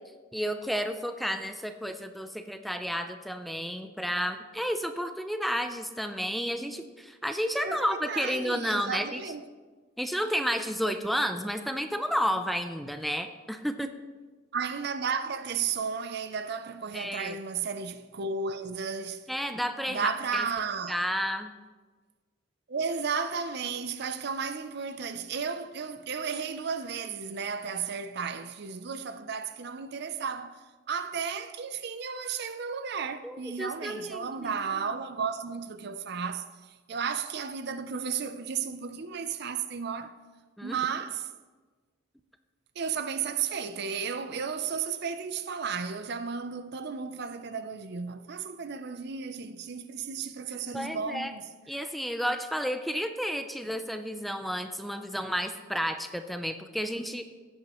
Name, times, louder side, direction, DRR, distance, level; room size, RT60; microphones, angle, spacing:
voice 1, 0.3-9.2 10.0-13.9 16.9-17.4 19.3-20.5 20.9-21.5 33.2-34.5 40.6-40.8 50.7-51.3 51.7-57.3, equal, ahead, 0.4 m, -31 dB
voice 2, 7.6-9.5 14.5-19.3 19.9-21.0 22.7-40.1 40.6-41.3 42.8-51.4, right 6 dB, 55° right, 0.5 m, -33 dB
15.5 x 8.7 x 3.0 m
head